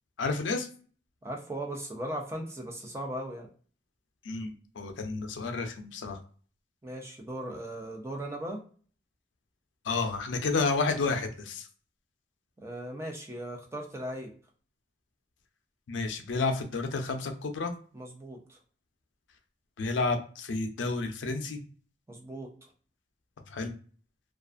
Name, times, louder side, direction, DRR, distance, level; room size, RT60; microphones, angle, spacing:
voice 1, 0.2-0.7 4.2-6.2 9.9-11.7 15.9-17.7 19.8-21.6 23.5-23.7, left 3 dB, 85° left, 7 dB, 0.5 m, -30 dB
voice 2, 1.2-3.5 6.8-8.6 12.6-14.3 17.9-18.6 22.1-22.5, right 1 dB, 15° right, 2 dB, 0.5 m, -38 dB
2.4 x 2.3 x 2.4 m, 0.42 s
head